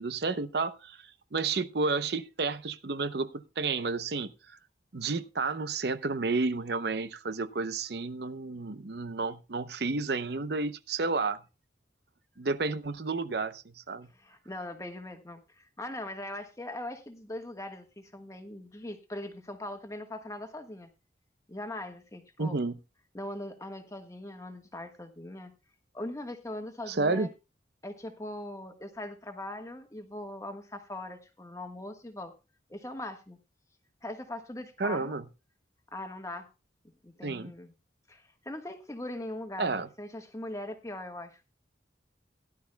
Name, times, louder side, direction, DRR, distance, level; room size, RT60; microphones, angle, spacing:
voice 1, 0.0-4.6 4.9-11.4 12.4-14.1 22.4-22.8 26.9-27.3 34.8-35.3 37.2-37.5 39.6-39.9, right 3 dB, 60° right, 0.7 m, -31 dB
voice 2, 14.1-20.9 21.5-22.7 23.1-25.5 25.9-27.3 27.8-32.3 32.7-33.4 34.0-35.1 35.9-36.5 37.0-37.7 38.1-41.4, left 1 dB, 15° left, 1.3 m, -40 dB
17.0 x 11.5 x 2.2 m
head